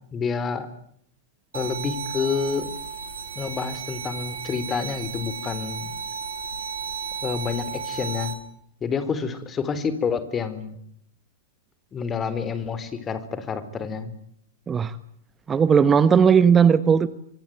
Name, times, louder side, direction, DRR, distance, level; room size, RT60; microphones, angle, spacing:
voice 1, 0.1-0.7 1.5-2.7 3.4-5.9 7.2-8.4 8.8-10.8 11.9-14.1, left 6 dB, 25° left, 13 dB, 4.2 m, -28 dB
sound 1, 1.5-8.3, right 5 dB, 80° right, 4.3 m, -34 dB
voice 2, 15.5-17.1, right 7 dB, 20° right, 15 dB, 1.2 m, -17 dB
27.0 x 22.5 x 9.5 m, 0.68 s
hypercardioid pair, 100°, 0 cm